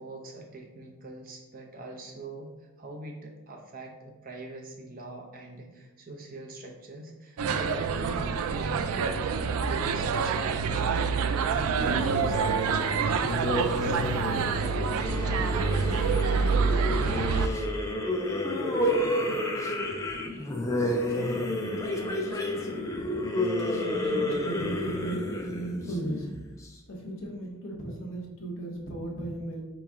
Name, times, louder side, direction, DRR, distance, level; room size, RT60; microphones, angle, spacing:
voice 1, 0.0-12.4 12.7-15.6, right 2 dB, 40° right, 1 dB, 0.6 m, -43 dB
sound 1, 7.4-17.5, right 5 dB, 75° right, 0.3 m, -27 dB
sound 2, 11.8-26.7, left 1 dB, 15° left, 0.4 m, -30 dB
voice 2, 21.0-22.8 23.4-26.3 26.9-29.6, right 1 dB, 55° left, 0 dB, 0.9 m, -37 dB
4.5 x 3.0 x 3.6 m, 1.1 s
head